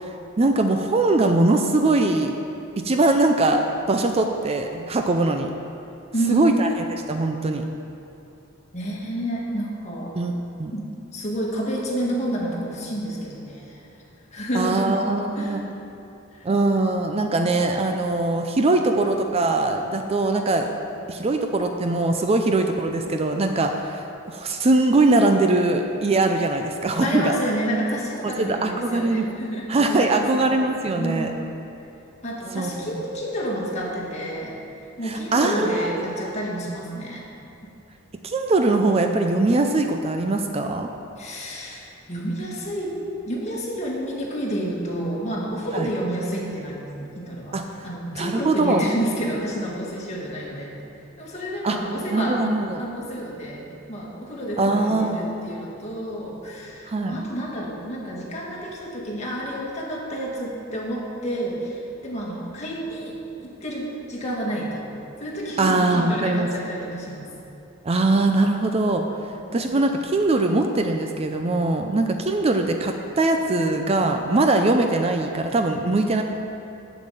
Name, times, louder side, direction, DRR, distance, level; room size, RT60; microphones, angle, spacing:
voice 1, 0.4-2.3 2.8-5.5 6.3-6.7 7.1-7.6 10.2-10.3 10.6-10.7 14.5-15.6 16.4-20.7 21.1-27.4 28.2-29.3 29.7-31.3 32.5-32.7 35.0-36.2 38.2-40.9 45.7-45.9 47.5-47.6 48.1-48.9 51.6-51.8 52.1-52.8 54.6-55.4 56.9-57.2 65.6-66.5 67.8-69.0 69.5-76.2, right 2 dB, 30° right, 5 dB, 0.5 m, -21 dB
voice 2, 6.1-6.5 8.7-10.2 10.7-10.8 11.1-13.8 14.3-15.0 15.3-15.6 16.3-16.5 27.0-30.5 31.0-31.3 32.2-34.6 35.0-37.2 41.2-47.6 47.8-50.8 51.2-52.4 52.8-64.9 65.2-67.3 69.5-69.8, right 1 dB, 35° left, -3 dB, 1.8 m, -29 dB
7.3 x 7.2 x 7.7 m, 2.7 s
head